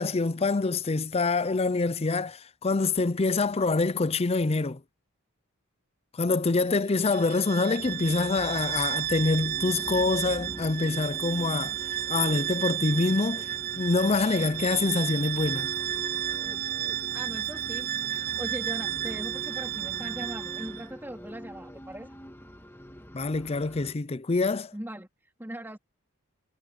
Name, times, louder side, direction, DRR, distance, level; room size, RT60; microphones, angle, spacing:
voice 1, 0.0-4.8 6.2-11.7 12.1-15.7 23.1-24.7, left 3 dB, 30° left, 0.5 m, -26 dB
Bowed string instrument, 7.0-20.9, right 13 dB, 45° right, 0.8 m, -32 dB
sound 1, 7.8-24.0, equal, 10° left, 1.9 m, -44 dB
voice 2, 17.1-22.2 24.7-25.8, right 1 dB, 10° right, 3.7 m, -40 dB
head